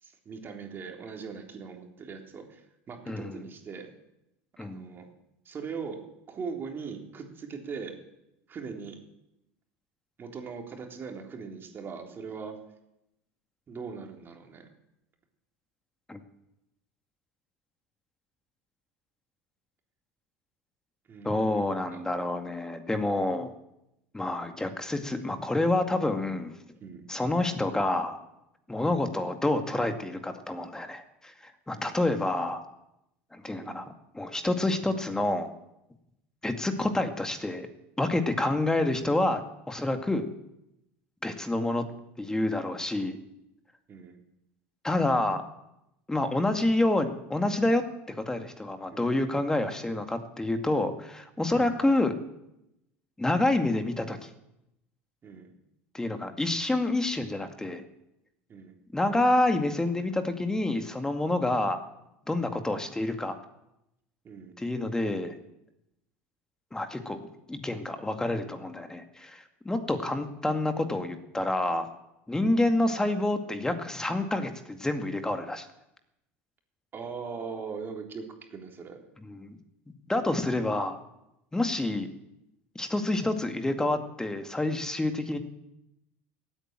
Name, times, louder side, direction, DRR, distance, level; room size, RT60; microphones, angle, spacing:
voice 1, 0.0-3.9 4.6-5.0 5.5-6.0 6.3-7.9 8.5-9.0 10.2-12.6 13.7-14.7 21.1-22.0 26.8-27.1 31.8-32.0 33.6-33.8 38.4-38.6 43.9-44.2 48.9-49.1 51.6-51.8 55.2-55.5 58.5-58.7 61.5-61.6 64.2-64.5 72.4-72.6 76.9-78.2 78.5-79.0, right 5 dB, 35° right, 3 dB, 3.6 m, -40 dB
voice 2, 3.1-3.4 4.6-4.9 16.1-16.2 21.2-23.5 24.1-26.5 27.1-28.2 28.7-32.6 33.3-35.5 36.4-37.7 38.0-39.4 39.7-40.3 41.2-41.8 42.2-43.2 44.8-45.4 46.1-47.8 48.1-52.1 53.2-54.3 55.9-57.8 58.9-61.8 62.3-63.4 64.6-65.4 66.7-67.2 67.5-71.9 72.3-75.7 79.2-79.6 80.1-81.0 81.5-82.1 82.8-85.4, left 2 dB, 10° left, 7 dB, 2.1 m, -28 dB
16.5 x 9.1 x 9.0 m, 0.86 s
supercardioid pair, 95°, 7 cm